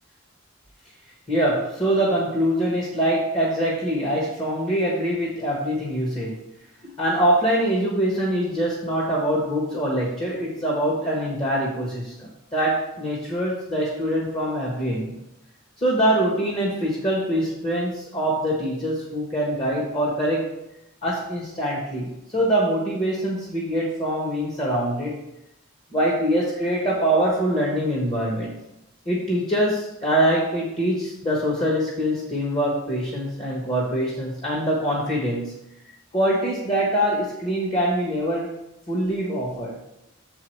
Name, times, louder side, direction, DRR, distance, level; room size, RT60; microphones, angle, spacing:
voice 1, 1.3-6.3 6.8-15.2 15.8-20.5 21.0-25.2 25.9-28.5 29.0-35.5 36.1-38.5 38.9-39.8, right 1 dB, 25° left, -3 dB, 1.3 m, -24 dB
6.9 x 4.8 x 4.6 m, 0.87 s
head